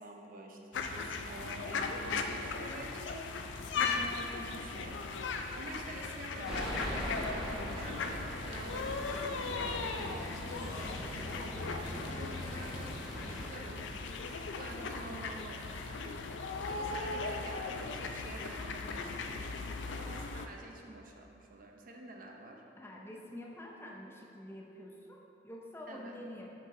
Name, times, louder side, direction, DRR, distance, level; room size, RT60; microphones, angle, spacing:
voice 1, 0.0-5.0 5.5-7.4 7.7-10.3 10.6-13.0 13.4-14.0 14.5-16.2 16.7-19.6 19.8-22.6 25.9-26.2, right 2 dB, 50° right, 1 dB, 0.7 m, -48 dB
sound 1, 0.7-20.5, left 4 dB, 80° left, 0.4 m, -38 dB
sound 2, 6.4-13.5, equal, 5° right, 1.2 m, -41 dB
voice 2, 22.8-26.5, left 1 dB, 15° left, -1 dB, 0.6 m, -47 dB
6.5 x 4.6 x 3.7 m, 2.8 s
head